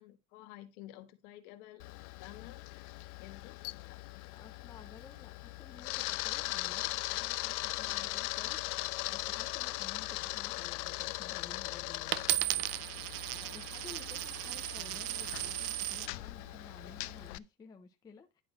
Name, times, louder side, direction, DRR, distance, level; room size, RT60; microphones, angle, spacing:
voice 1, 0.0-2.6 3.2-4.0, left 14 dB, 60° left, 1.7 m, -52 dB
Camera, 1.8-17.4, left 21 dB, 85° left, 0.7 m, -39 dB
voice 2, 4.3-18.4, left 5 dB, 10° left, 0.5 m, -54 dB
Coin (dropping), 12.1-16.1 16.8-17.3, right 17 dB, 50° right, 0.5 m, -35 dB
10.5 x 3.8 x 5.9 m
cardioid pair, 165°, 45 cm